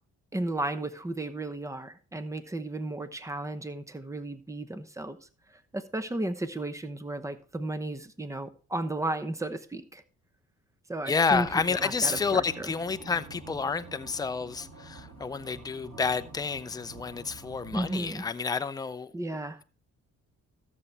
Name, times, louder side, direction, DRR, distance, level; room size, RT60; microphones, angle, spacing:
voice 1, 0.3-5.2 5.7-10.0 10.9-12.7 17.7-18.2 19.1-19.6, right 2 dB, 10° right, 0.9 m, -34 dB
voice 2, 11.1-19.1, left 5 dB, 15° left, 0.5 m, -29 dB
sound 1, 11.3-18.5, right 3 dB, 60° right, 2.9 m, -47 dB
13.5 x 7.1 x 3.2 m
cardioid pair, 90°, 30 cm